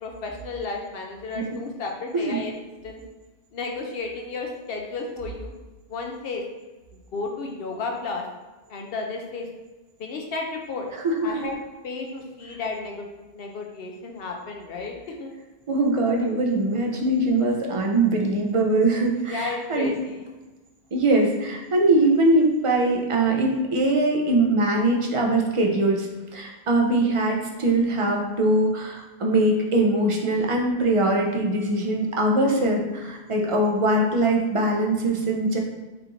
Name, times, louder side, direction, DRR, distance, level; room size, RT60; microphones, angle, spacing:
voice 1, 0.0-2.5 2.8-3.0 3.5-5.5 5.9-6.4 7.1-8.2 8.7-9.5 10.0-10.9 11.2-11.6 11.8-15.3 19.3-20.3, left 3 dB, 70° left, 2 dB, 0.8 m, -33 dB
voice 2, 11.0-11.3 15.7-19.9 20.9-35.6, right 2 dB, 40° right, 0 dB, 0.6 m, -22 dB
4.8 x 2.5 x 3.0 m, 1.2 s
omnidirectional pair, 1.0 m